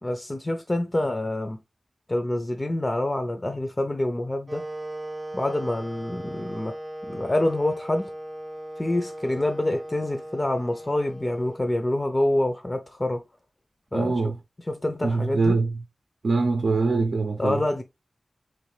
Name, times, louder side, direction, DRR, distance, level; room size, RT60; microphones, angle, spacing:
voice 1, 0.0-1.6 2.1-4.7 5.3-6.7 7.0-8.1 8.8-13.2 13.9-14.1 14.7-15.6 17.4-17.8, left 1 dB, 25° left, 0.5 m, -26 dB
Wind instrument woodwind instrument, 4.5-12.4, right 1 dB, 30° right, 0.5 m, -38 dB
voice 2, 13.9-14.3 15.0-15.8 16.2-17.6, right 3 dB, 80° right, 0.5 m, -23 dB
4.3 x 3.1 x 3.2 m
wide cardioid pair, 95°, 0 cm